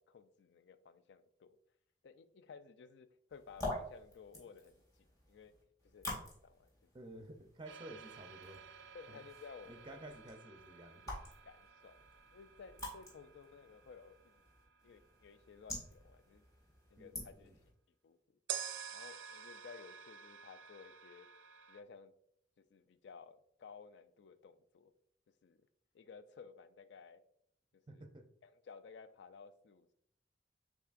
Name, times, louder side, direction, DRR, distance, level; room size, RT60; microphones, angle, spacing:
voice 1, 0.0-1.6 2.0-4.8 5.3-5.5 5.8-6.1 6.4-6.9 8.9-9.8 11.4-12.0 12.3-14.4 14.8-16.5 16.9-17.5 18.0-18.2 18.9-21.3 21.7-22.1 22.6-24.9 25.4-25.6 25.9-27.2 27.9-28.0 28.4-29.9, left 5 dB, 70° left, 12 dB, 0.4 m, -56 dB
sound 1, 3.3-17.7, left 1 dB, 20° left, 1.8 m, -49 dB
voice 2, 6.9-8.7 9.1-9.2 9.7-11.1 17.0-17.6 27.9-28.3, right 1 dB, 25° right, 6 dB, 0.5 m, -52 dB
sound 2, 7.7-15.6 18.5-21.8, right 8 dB, 85° right, 0.4 m, -50 dB
5.8 x 3.7 x 2.5 m, 0.72 s
head